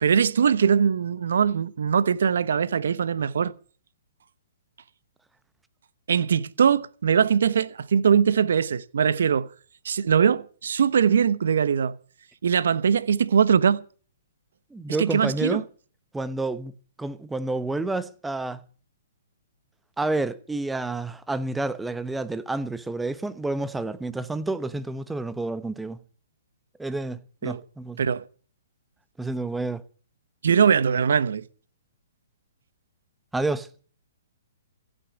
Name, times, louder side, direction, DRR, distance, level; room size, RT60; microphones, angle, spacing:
voice 1, 0.0-3.5 6.1-9.5 9.8-12.0 12.4-13.8 15.0-15.6 27.4-27.6 28.0-28.3 30.4-31.5, right 7 dB, 70° right, 1.0 m, -21 dB
voice 2, 14.7-15.6 16.1-16.7 17.0-18.6 20.0-26.0 26.8-28.0 29.2-29.8 33.3-33.7, right 2 dB, 5° right, 1.0 m, -29 dB
15.5 x 9.1 x 8.2 m
hypercardioid pair, 135°, 0 cm